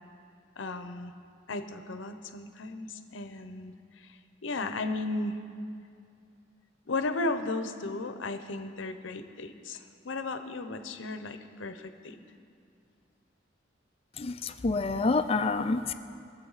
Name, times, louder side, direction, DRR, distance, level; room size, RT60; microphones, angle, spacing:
voice 1, 0.6-1.1 1.5-4.1 4.4-5.4 6.9-12.2, left 2 dB, 80° left, 8 dB, 0.7 m, -35 dB
voice 2, 14.2-15.9, left 3 dB, 30° left, 9 dB, 0.5 m, -28 dB
22.0 x 7.8 x 4.0 m, 2.4 s
head